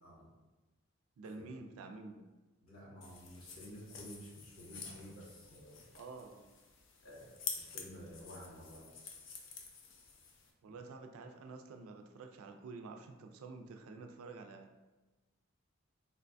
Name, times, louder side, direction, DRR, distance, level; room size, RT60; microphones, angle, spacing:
voice 1, 1.2-2.2 6.0-6.5 10.6-14.7, right 3 dB, 80° right, 5 dB, 0.3 m, -49 dB
voice 2, 2.6-5.8 7.0-8.9 10.7-10.8, equal, 85° left, -5 dB, 1.1 m, -52 dB
sound 1, 3.0-10.5, left 5 dB, 60° left, 0.4 m, -49 dB
3.8 x 2.2 x 2.6 m, 1.2 s
head